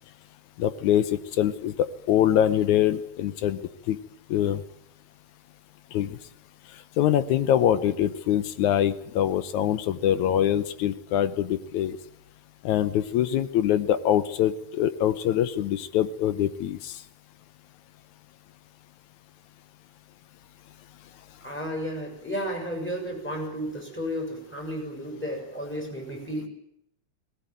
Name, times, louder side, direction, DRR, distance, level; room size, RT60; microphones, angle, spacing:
voice 1, 0.6-3.6 3.9-4.0 4.3-4.6 5.9-6.2 7.0-12.0 12.6-17.0, left 11 dB, 75° left, 13 dB, 2.3 m, -24 dB
voice 2, 21.4-26.5, equal, 5° left, 1 dB, 6.7 m, -33 dB
19.0 x 19.0 x 9.3 m, 0.75 s
omnidirectional pair, 3.5 m